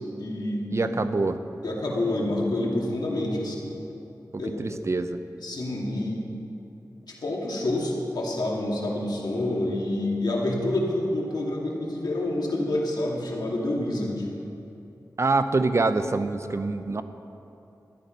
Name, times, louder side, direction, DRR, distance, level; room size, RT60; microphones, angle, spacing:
voice 1, 0.2-1.0 1.6-3.7 4.3-4.6 5.4-6.3 7.1-14.3, left 1 dB, 80° left, -2 dB, 2.2 m, -28 dB
voice 2, 0.7-1.4 4.3-5.2 15.2-17.0, right 3 dB, 40° right, 10 dB, 0.6 m, -25 dB
13.5 x 11.0 x 5.3 m, 2.8 s
wide cardioid pair, 95°, 7 cm